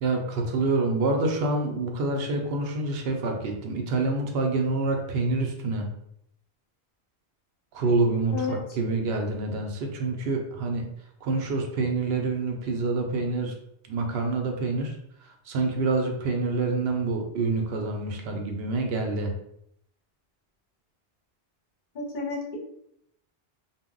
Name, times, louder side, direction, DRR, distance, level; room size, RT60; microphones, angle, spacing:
voice 1, 0.0-5.9 7.7-10.9 11.2-13.5 13.9-15.0 15.2-19.3, right 3 dB, 75° right, 3 dB, 0.8 m, -27 dB
voice 2, 21.9-22.6, left 4 dB, 55° left, -1 dB, 0.7 m, -31 dB
2.1 x 2.1 x 3.6 m, 0.75 s
omnidirectional pair, 1.1 m